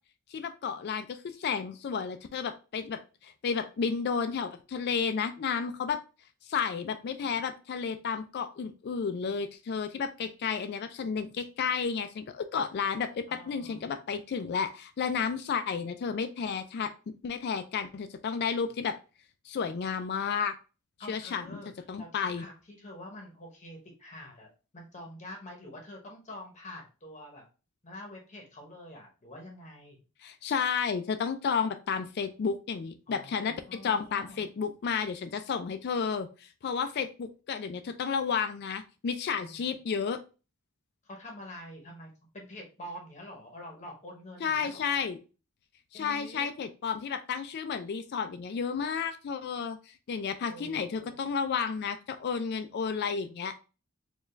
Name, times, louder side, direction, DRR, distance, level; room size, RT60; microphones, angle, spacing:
voice 1, 0.3-6.0 6.5-19.0 19.5-20.5 21.1-21.6 21.9-22.4 30.2-40.2 44.4-45.2 45.9-53.5, left 6 dB, 50° left, 9 dB, 0.3 m, -32 dB
voice 2, 13.3-14.0 21.0-21.7 22.0-24.5 24.7-27.4 27.8-30.0 33.1-34.4 39.4-39.7 41.0-45.0 45.9-46.5 50.4-51.2, left 1 dB, 30° left, 1 dB, 0.8 m, -46 dB
4.4 x 2.3 x 3.1 m, 0.33 s
head